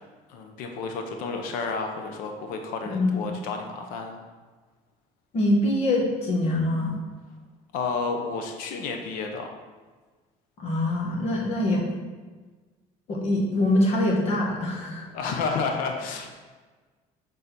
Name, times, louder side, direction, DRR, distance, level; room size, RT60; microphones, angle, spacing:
voice 1, 0.3-4.2 7.7-9.5 15.1-16.3, left 4 dB, 80° left, 4 dB, 0.9 m, -31 dB
voice 2, 2.9-3.3 5.3-7.0 10.6-11.8 13.1-15.0, left 1 dB, 45° left, -2 dB, 1.8 m, -24 dB
6.9 x 4.1 x 5.9 m, 1.4 s
cardioid pair, 155°, 14 cm